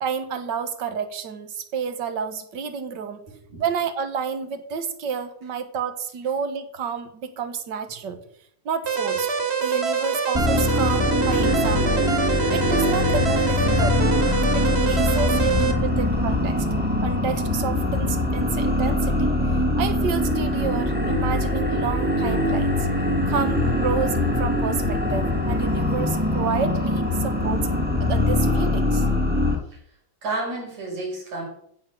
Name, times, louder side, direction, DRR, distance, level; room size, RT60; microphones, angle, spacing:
voice 1, 0.0-3.2 3.6-8.2 8.6-9.3 9.6-12.1 12.5-14.1 14.5-16.7 17.0-19.3 19.8-22.9 23.3-27.7 28.0-29.0, right 6 dB, 55° right, 10 dB, 1.3 m, -30 dB
voice 2, 3.3-3.6 14.8-14.9 15.8-15.9 29.7-29.8 30.2-31.5, right 2 dB, 75° right, -3 dB, 7.2 m, -31 dB
sound 1, 8.9-15.7, right 5 dB, 35° right, 1.1 m, -25 dB
sound 2, 10.3-29.5, left 1 dB, 5° right, 1.6 m, -22 dB
15.5 x 6.5 x 7.4 m, 0.68 s
omnidirectional pair, 3.3 m